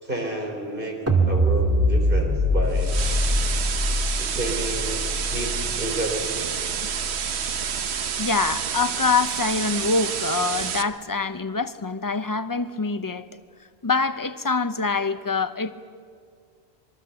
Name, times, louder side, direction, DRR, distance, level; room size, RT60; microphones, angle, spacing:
voice 1, 0.0-3.0 3.9-6.5, right 1 dB, 55° right, 2 dB, 4.0 m, -31 dB
sound 1, 1.1-7.4, equal, 15° right, 2.1 m, -24 dB
sound 2, 2.7-10.8, right 7 dB, 85° right, 1.1 m, -29 dB
voice 2, 8.2-13.3 13.8-15.7, left 4 dB, 25° left, 11 dB, 0.6 m, -25 dB
24.5 x 22.0 x 7.0 m, 2.1 s
omnidirectional pair, 1.1 m